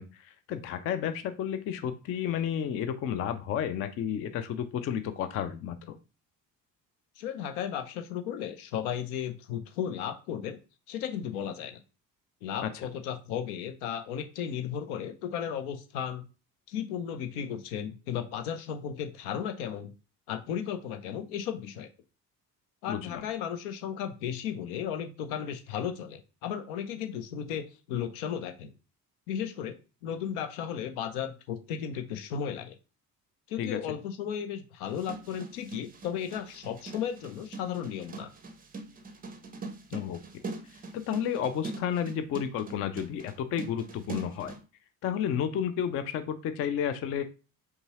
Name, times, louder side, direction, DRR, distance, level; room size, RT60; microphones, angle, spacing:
voice 1, 0.0-6.0 12.6-12.7 22.9-23.2 33.6-34.0 39.9-40.2 40.9-44.6 45.0-47.2, left 9 dB, 30° left, 10 dB, 0.4 m, -32 dB
voice 2, 7.2-10.6 10.9-11.8 12.4-16.2 16.7-19.9 20.3-21.9 22.8-28.7 29.3-29.8 30.0-32.8 33.5-38.3, left 8 dB, 60° left, 8 dB, 0.7 m, -35 dB
sound 1, 34.9-44.6, right 3 dB, 20° right, 0.6 m, -42 dB
5.3 x 2.4 x 2.9 m, 0.33 s
figure-of-eight pair, 50°, 49 cm